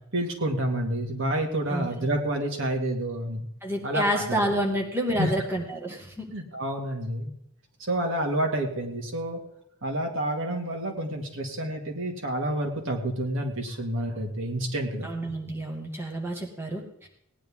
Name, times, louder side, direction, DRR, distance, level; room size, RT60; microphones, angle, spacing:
voice 1, 0.1-3.4 3.8-4.4 5.2-5.3 6.3-7.3 7.8-9.4 9.8-15.1, right 1 dB, 65° right, 1 dB, 2.3 m, -29 dB
voice 2, 3.6-6.1 15.0-17.1, equal, 10° right, 0 dB, 1.8 m, -29 dB
18.0 x 10.0 x 3.7 m, 0.72 s
head